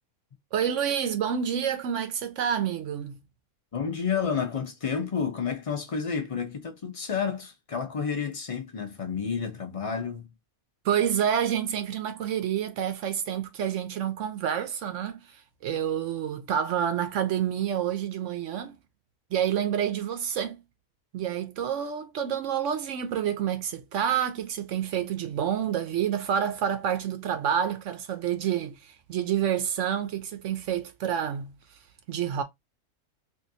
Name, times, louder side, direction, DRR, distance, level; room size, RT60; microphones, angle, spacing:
voice 1, 0.5-3.2 10.8-15.4 15.6-18.8 19.3-20.6 21.1-31.6 32.1-32.4, right 9 dB, 65° right, 0.8 m, -28 dB
voice 2, 3.7-10.3, left 6 dB, 35° left, 0.6 m, -30 dB
3.6 x 2.6 x 2.6 m
omnidirectional pair, 1.5 m